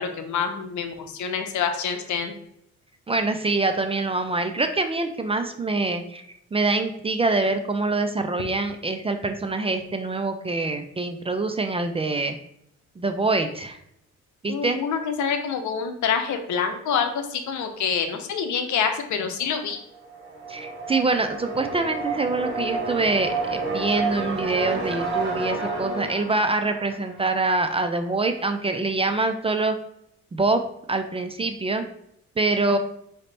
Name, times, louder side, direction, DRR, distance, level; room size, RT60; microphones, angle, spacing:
voice 1, 0.0-2.3 14.5-19.8, left 6 dB, 70° left, 6 dB, 0.7 m, -26 dB
voice 2, 3.1-6.2 6.5-12.4 13.0-13.8 14.4-14.8 20.5-29.8 30.3-30.6 30.9-31.9 32.4-32.8, right 3 dB, 20° right, 7 dB, 0.4 m, -25 dB
sound 1, 19.9-27.7, right 3 dB, 35° right, 1.6 m, -30 dB
5.0 x 2.8 x 3.3 m, 0.75 s
cardioid pair, 90°, 30 cm